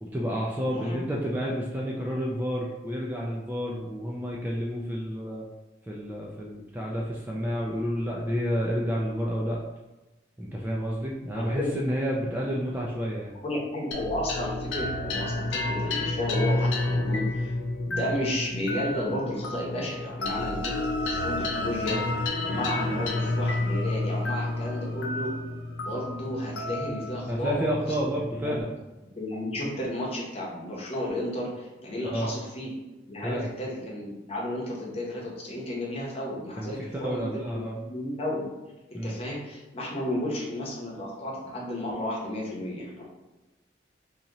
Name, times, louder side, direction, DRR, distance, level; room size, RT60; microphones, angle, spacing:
voice 1, 0.0-5.4 5.9-9.6 10.4-13.3 27.3-28.7 32.0-32.3 33.2-33.5 36.6-37.8 38.9-39.2, equal, 10° right, -3 dB, 0.4 m, -30 dB
voice 2, 0.7-1.0 11.3-11.7 13.4-17.5 17.8-22.0 22.4-25.3 25.8-27.6 28.0-28.1 28.4-28.6 29.1-32.7 33.1-38.4 38.9-43.0, left 1 dB, 35° left, -4 dB, 0.9 m, -33 dB
sound 1, 13.9-28.6, left 2 dB, 90° left, 0.5 m, -30 dB
3.8 x 2.8 x 2.9 m, 1.1 s
head